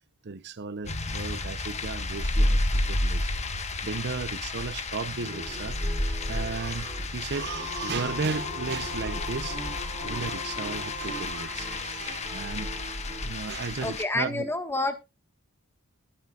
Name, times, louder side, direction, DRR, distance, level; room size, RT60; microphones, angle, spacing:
voice 1, 0.3-2.6 2.9-3.2 3.8-5.8 6.1-9.6 10.0-12.7 13.2-14.5, right 4 dB, 50° right, 0.7 m, -34 dB
sound 1, 0.8-14.0, left 2 dB, 30° left, 1.3 m, -31 dB
Guitar, 5.0-13.3, right 1 dB, 20° right, 5.6 m, -43 dB
sound 2, 7.3-11.8, left 3 dB, 55° left, 2.9 m, -39 dB
voice 2, 13.8-15.0, left 2 dB, 10° left, 1.4 m, -29 dB
20.5 x 8.9 x 2.4 m
head